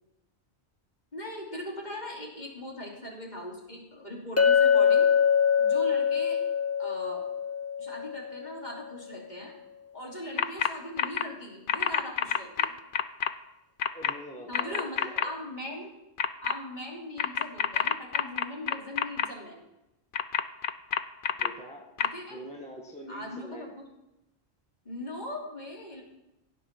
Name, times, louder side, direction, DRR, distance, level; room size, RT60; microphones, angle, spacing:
voice 1, 1.1-5.1 5.6-6.4 6.8-7.3 7.8-9.5 9.9-12.7 14.5-15.9 16.4-19.6 22.0-22.4 23.1-23.9 24.8-26.0, left 1 dB, 40° left, -2 dB, 3.3 m, -40 dB
Chink clink, 4.4-8.6, left 7 dB, 20° left, 0.4 m, -24 dB
sound 1, 10.4-10.7 11.0-11.2 11.7-13.3 13.8-14.1 14.5-15.2 16.2-16.5 17.2-19.3 20.1-21.5 22.0-22.1, left 8 dB, 55° left, 0.8 m, -27 dB
voice 2, 13.9-15.4 21.4-21.9 22.3-23.7, equal, 5° left, -1 dB, 1.7 m, -44 dB
16.5 x 7.9 x 6.0 m, 0.94 s
omnidirectional pair, 1.1 m